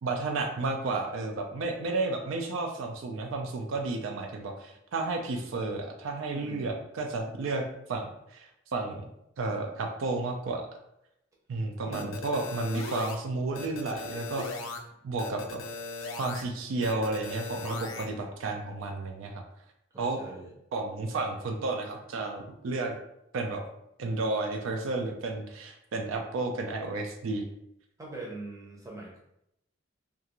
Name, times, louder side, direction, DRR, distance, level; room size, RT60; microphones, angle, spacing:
voice 1, 0.0-9.1 9.4-10.6 11.5-14.7 15.0-15.6 16.2-19.4 20.0-20.2 20.7-22.9 23.3-23.6 24.0-27.5, right 3 dB, 75° right, 3 dB, 0.4 m, -32 dB
voice 2, 6.3-6.7 11.9-12.2 19.9-20.5 28.0-29.2, right 2 dB, 15° right, -3 dB, 0.6 m, -42 dB
sound 1, 11.9-13.2 13.5-14.8 15.2-16.4 16.8-18.1, left 3 dB, 70° left, 0.4 m, -38 dB
2.4 x 2.3 x 2.9 m, 0.80 s
head